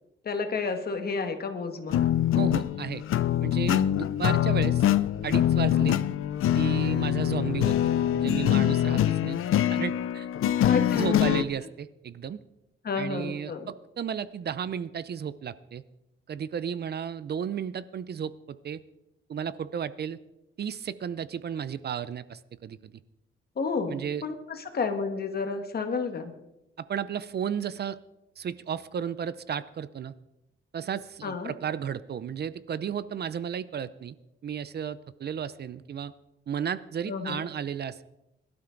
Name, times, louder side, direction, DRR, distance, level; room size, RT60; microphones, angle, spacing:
voice 1, 0.3-2.0 10.6-11.4 12.8-13.7 23.6-26.3 31.2-31.5 37.1-37.4, left 4 dB, 50° left, 6 dB, 1.7 m, -31 dB
sound 1, 1.9-11.4, left 11 dB, 90° left, 0.6 m, -24 dB
voice 2, 2.4-3.0 3.4-4.8 5.2-6.0 6.5-9.4 9.7-10.3 10.9-12.4 13.0-15.8 16.3-18.8 19.3-20.2 20.6-22.9 23.9-24.2 26.8-28.0 28.4-30.1 30.7-34.2 34.4-36.1 36.5-38.0, right 8 dB, 50° right, 16 dB, 0.6 m, -33 dB
21.5 x 12.0 x 3.9 m, 0.92 s
wide cardioid pair, 135°, 21 cm